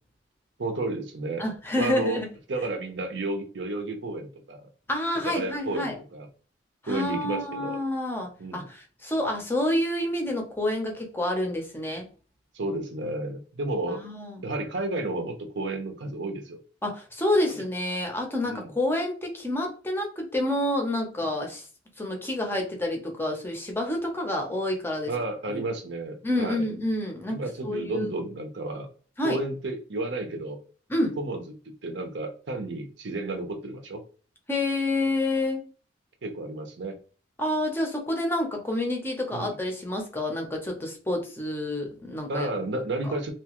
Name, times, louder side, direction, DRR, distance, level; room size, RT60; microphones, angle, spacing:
voice 1, 0.6-1.4 1.8-2.2 2.5-4.7 5.2-6.3 6.9-7.8 8.4-8.7 12.5-14.0 14.4-16.6 18.5-18.7 21.2-21.3 25.1-26.7 27.3-28.9 29.2-30.6 31.2-34.0 36.2-37.0 39.3-39.6 42.3-43.3, right 2 dB, 60° right, 5 dB, 0.6 m, -32 dB
voice 2, 1.4-2.3 4.9-5.9 6.8-12.1 13.9-14.4 16.8-21.6 22.0-25.1 25.5-25.6 26.2-28.1 29.2-29.4 30.9-31.2 34.5-35.6 37.4-42.5 43.0-43.1, left 1 dB, 10° left, 2 dB, 0.6 m, -28 dB
2.8 x 2.3 x 2.9 m, 0.38 s
head